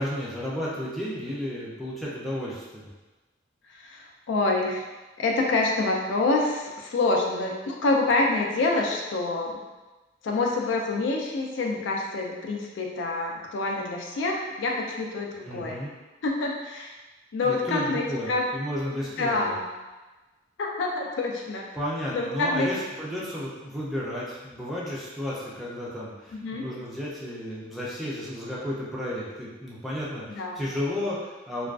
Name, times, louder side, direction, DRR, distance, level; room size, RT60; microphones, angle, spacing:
voice 1, 0.0-2.9 15.4-15.9 17.4-19.5 21.7-31.7, equal, ahead, -7 dB, 0.4 m, -33 dB
voice 2, 3.7-4.8 5.2-9.6 10.2-15.8 16.2-16.9 17.3-18.5 19.2-19.7 20.6-21.6 22.1-22.7 26.3-26.7 30.3-30.7, left 2 dB, 75° left, 0 dB, 0.4 m, -27 dB
2.3 x 2.3 x 2.3 m, 1.2 s
head